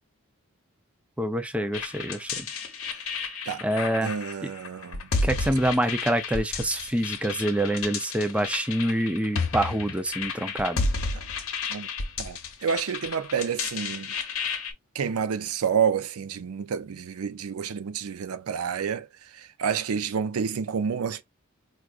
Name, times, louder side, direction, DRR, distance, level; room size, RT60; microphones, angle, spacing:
voice 1, 1.2-2.5 3.6-4.1 5.2-10.8, right 1 dB, 5° right, 0.4 m, -26 dB
sound 1, 1.7-14.7, left 4 dB, 65° left, 0.8 m, -32 dB
voice 2, 4.0-5.0 11.7-11.9 12.2-14.1 14.9-21.2, right 7 dB, 85° right, 0.5 m, -29 dB
4.7 x 2.3 x 2.3 m
head